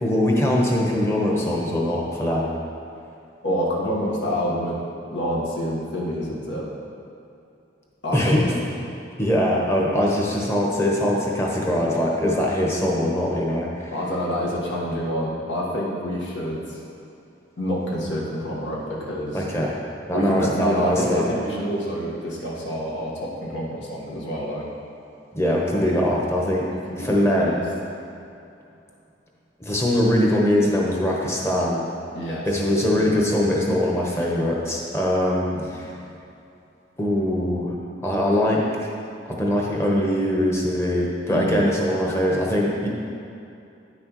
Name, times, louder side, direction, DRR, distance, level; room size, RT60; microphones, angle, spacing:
voice 1, 0.0-2.5 8.1-8.6 9.2-13.9 19.3-19.7 20.1-21.2 25.3-26.7 27.0-27.7 29.6-31.8 32.5-35.9 37.0-37.7 38.0-38.6 39.3-42.9, left 1 dB, 15° left, -3 dB, 1.0 m, -22 dB
voice 2, 3.4-4.8 5.1-6.7 8.0-8.5 13.9-16.8 17.6-19.5 20.1-24.7 25.7-25.9 26.7-27.6 32.1-32.6 32.9-33.3 35.5-35.8 41.3-41.7, equal, 80° left, -4 dB, 1.5 m, -27 dB
9.6 x 6.1 x 3.0 m, 2.7 s
head